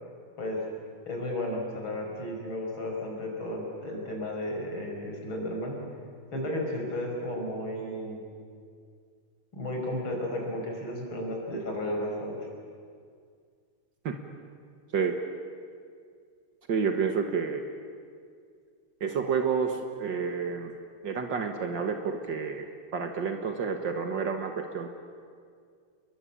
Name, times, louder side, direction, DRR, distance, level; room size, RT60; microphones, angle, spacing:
voice 1, 1.1-5.8 6.3-8.2 9.5-12.4, left 1 dB, 90° left, 1 dB, 6.1 m, -33 dB
voice 2, 16.7-17.6 19.0-20.7 21.0-24.9, right 5 dB, 65° right, 5 dB, 2.1 m, -29 dB
30.0 x 21.5 x 8.6 m, 2.2 s
omnidirectional pair, 2.2 m